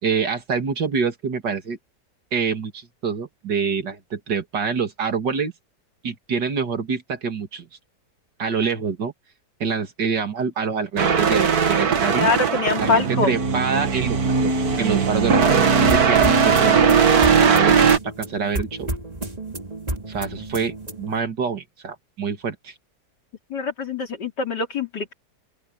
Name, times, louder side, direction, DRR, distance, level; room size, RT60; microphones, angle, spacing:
voice 1, 0.0-1.8 2.3-5.5 6.0-7.7 8.4-9.1 9.6-12.3 12.8-14.2 14.4-16.8 17.4-18.9 20.1-22.7, right 5 dB, 90° right, 2.9 m, -26 dB
sound 1, 11.0-18.0, right 6 dB, 60° right, 2.1 m, -18 dB
voice 2, 12.2-13.3 23.5-25.1, left 4 dB, 80° left, 3.7 m, -23 dB
sound 2, 15.9-21.2, right 1 dB, 20° right, 2.6 m, -31 dB
open air
omnidirectional pair, 1.8 m